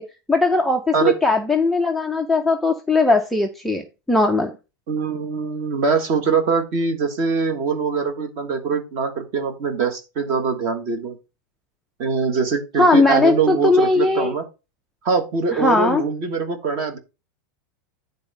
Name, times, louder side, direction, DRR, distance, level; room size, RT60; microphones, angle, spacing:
voice 1, 0.3-3.8 4.1-4.5 12.8-14.3 15.5-16.0, left 3 dB, ahead, 5 dB, 0.4 m, -18 dB
voice 2, 4.9-11.2 12.0-14.4 15.0-17.0, right 5 dB, 30° right, 7 dB, 1.4 m, -22 dB
9.7 x 4.0 x 5.4 m, 0.29 s
supercardioid pair, 180°, 10 cm